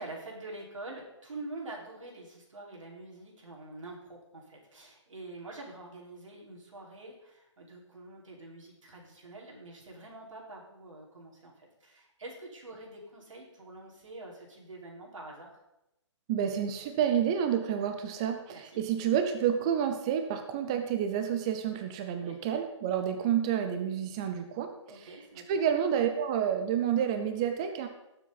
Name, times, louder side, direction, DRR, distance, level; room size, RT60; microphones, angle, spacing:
voice 1, 0.0-15.5 18.5-18.8 22.2-22.4 24.9-25.6, right 2 dB, 85° right, -2 dB, 4.5 m, -46 dB
voice 2, 16.3-24.7 25.5-27.9, right 9 dB, 10° right, 7 dB, 0.3 m, -29 dB
18.0 x 7.5 x 4.0 m, 0.89 s
hypercardioid pair, 165°, 16 cm